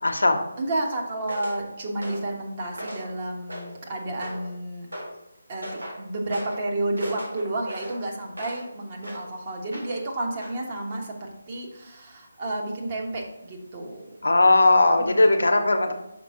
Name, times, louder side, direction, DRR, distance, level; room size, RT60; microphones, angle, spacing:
voice 1, 0.0-0.4 14.2-15.9, left 2 dB, 75° left, 5 dB, 0.9 m, -18 dB
voice 2, 0.6-4.9 5.5-5.7 5.9-14.2 15.0-15.2, right 1 dB, 35° right, -1 dB, 1.2 m, -31 dB
sound 1, 1.3-1.6 2.0-2.3 2.7-3.1 3.5-3.8 4.2-4.5 4.9-5.1 5.6-6.0 6.3-6.6 7.0-8.7 9.0-9.3 9.7-10.1 10.4-10.6, equal, 85° right, 2.1 m, -38 dB
5.9 x 5.1 x 3.8 m, 0.88 s
figure-of-eight pair, 155°, 0 cm